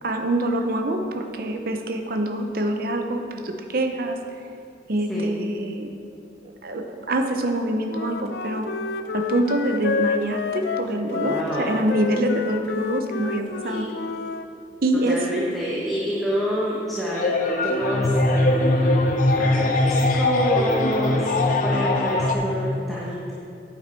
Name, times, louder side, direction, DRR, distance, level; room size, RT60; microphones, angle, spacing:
voice 1, 0.0-4.2 4.9-5.9 6.4-8.7 9.1-13.9 14.8-15.4, right 1 dB, 55° right, 5 dB, 0.7 m, -25 dB
Wind instrument woodwind instrument, 7.9-14.5, left 5 dB, 65° left, 0.4 m, -29 dB
voice 2, 11.2-11.7 13.6-14.0 15.1-23.3, equal, ahead, -7 dB, 1.2 m, -28 dB
sound 1, 17.2-22.3, left 2 dB, 50° left, 0.8 m, -21 dB
9.4 x 7.9 x 4.5 m, 2.7 s
head